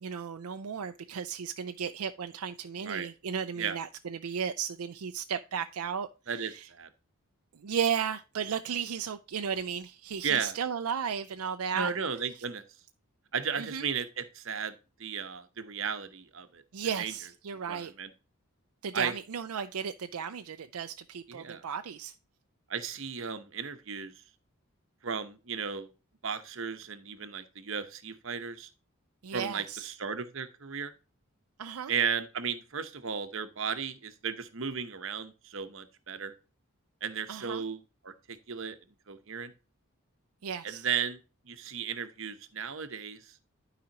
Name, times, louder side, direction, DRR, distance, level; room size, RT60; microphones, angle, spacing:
voice 1, 0.0-6.1 6.3-6.7 7.5-11.9 13.6-13.9 16.7-17.9 18.8-22.1 29.2-29.9 31.6-31.9 37.3-37.6 40.4-40.9, right 7 dB, 80° right, 0.5 m, -34 dB
voice 2, 6.3-6.9 10.2-10.6 11.7-12.6 13.3-14.7 15.0-16.6 17.0-17.1 17.7-18.1 18.9-19.1 21.3-21.6 22.7-24.1 25.0-25.9 26.2-28.7 29.3-30.9 31.9-36.3 37.0-38.8 39.1-39.5 40.6-43.4, right 6 dB, 60° right, 0.9 m, -35 dB
11.5 x 5.0 x 2.9 m
head